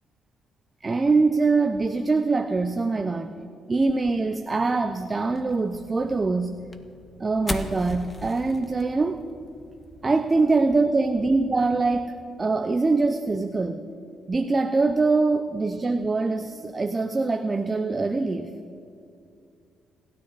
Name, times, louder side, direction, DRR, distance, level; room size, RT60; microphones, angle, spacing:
voice 1, 0.8-3.4 3.7-6.6 7.2-9.2 10.0-12.1 12.4-13.8 14.3-18.5, right 3 dB, 25° right, 7 dB, 0.8 m, -23 dB
sound 1, 5.3-12.1, left 2 dB, 25° left, 1.4 m, -41 dB
27.0 x 13.0 x 4.2 m, 2.4 s
cardioid pair, 90°, 0 cm